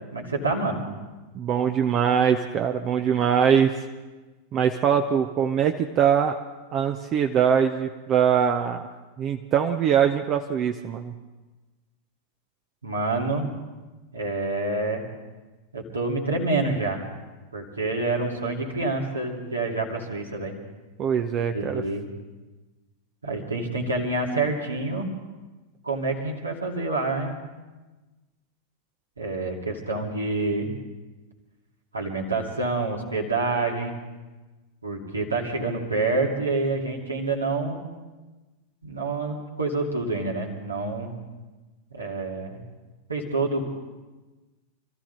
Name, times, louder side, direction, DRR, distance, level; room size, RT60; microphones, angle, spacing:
voice 1, 0.1-0.9 12.8-13.5 14.1-15.0 15.7-17.0 17.5-20.6 21.5-22.1 23.2-25.1 25.8-27.3 29.2-30.7 31.9-34.0 34.8-37.8 38.8-41.1 41.9-42.6 43.1-43.6, right 3 dB, 80° right, 0 dB, 2.6 m, -27 dB
voice 2, 1.3-3.8 4.5-6.4 6.7-8.8 9.2-11.1 21.0-21.8, right 8 dB, 35° right, 6 dB, 0.7 m, -22 dB
25.5 x 14.0 x 4.0 m, 1.2 s
figure-of-eight pair, 90°, 0 cm